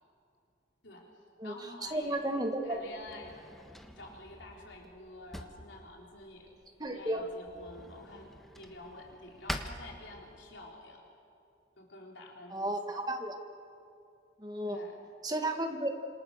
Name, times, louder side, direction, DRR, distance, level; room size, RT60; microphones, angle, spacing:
voice 1, 0.8-3.4 4.0-11.0 11.8-12.9 14.7-15.0, left 2 dB, 80° left, -1 dB, 3.7 m, -50 dB
voice 2, 1.8-2.8 6.8-7.2 12.5-13.4 14.4-14.8 15.2-15.9, right 1 dB, 20° right, 4 dB, 1.8 m, -33 dB
Drawer open or close, 1.9-10.6, equal, ahead, 1.3 m, -47 dB
27.0 x 26.5 x 6.6 m, 2.5 s
head